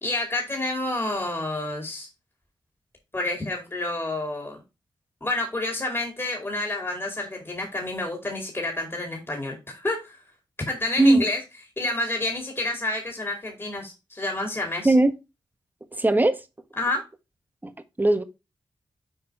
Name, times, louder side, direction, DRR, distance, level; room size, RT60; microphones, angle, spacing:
voice 1, 0.0-2.1 3.1-4.6 5.2-10.2 10.7-11.4 11.8-14.9 16.8-17.0, left 2 dB, 30° left, 2.6 m, -29 dB
voice 2, 16.0-16.3 18.0-18.2, right 2 dB, 20° right, 1.3 m, -17 dB
6.6 x 4.3 x 4.8 m
cardioid pair, 45°, 9 cm